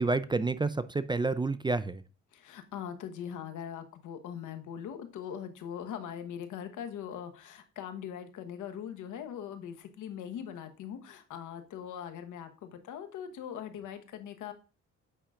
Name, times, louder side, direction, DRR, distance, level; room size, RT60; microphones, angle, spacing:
voice 1, 0.0-2.0, right 3 dB, 15° right, 0.4 m, -29 dB
voice 2, 2.3-14.5, left 8 dB, 80° left, 1.2 m, -41 dB
8.9 x 5.6 x 2.4 m
cardioid pair, 90°, 30 cm